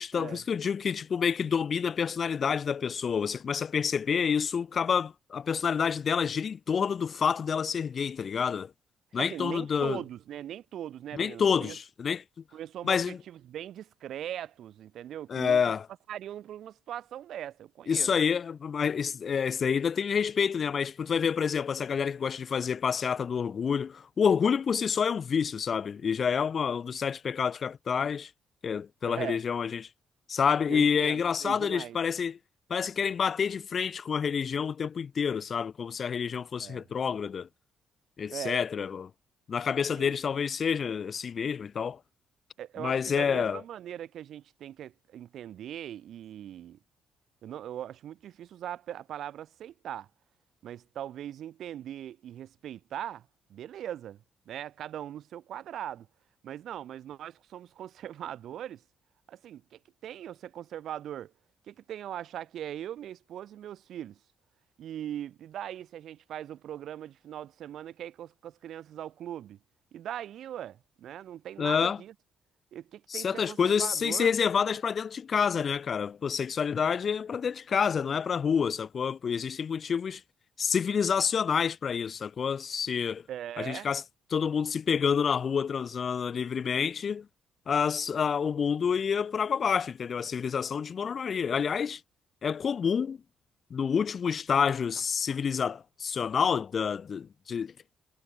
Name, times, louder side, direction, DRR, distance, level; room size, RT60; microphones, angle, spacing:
voice 1, 0.0-8.7 9.1-10.0 11.1-12.2 12.8-13.2 15.3-15.9 17.9-28.3 28.6-29.9 30.3-32.4 32.7-37.5 38.2-39.1 39.5-42.0 42.8-43.6 71.6-72.0 73.1-80.2 80.6-83.2 83.6-84.0 84.3-87.3 87.7-92.0 92.4-93.2 93.7-97.7, left 6 dB, 50° left, 0.8 m, -28 dB
voice 2, 9.2-11.8 12.5-15.6 16.1-18.1 29.0-29.4 30.7-32.0 36.6-36.9 38.3-38.6 40.0-40.2 42.6-46.8 47.4-50.1 50.6-56.1 56.4-58.8 59.3-61.3 61.7-64.2 64.8-69.6 69.9-72.1 72.7-74.4 83.3-83.9, right 11 dB, 70° right, 2.1 m, -40 dB
cardioid pair, 90°, 0 cm